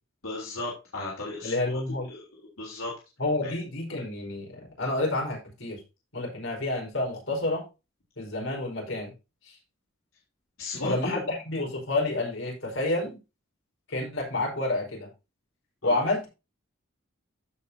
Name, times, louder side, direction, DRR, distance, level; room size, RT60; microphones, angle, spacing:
voice 1, 0.2-2.2 2.6-2.9 3.4-3.6 10.6-11.2 15.8-16.0, left 2 dB, 90° left, -4 dB, 3.5 m, -35 dB
voice 2, 1.4-2.1 3.2-5.8 6.1-7.6 8.2-9.1 9.4-9.6 10.8-13.2 13.9-15.1 15.8-16.3, left 2 dB, 70° left, 0 dB, 4.9 m, -29 dB
15.0 x 5.3 x 2.8 m, 0.28 s
head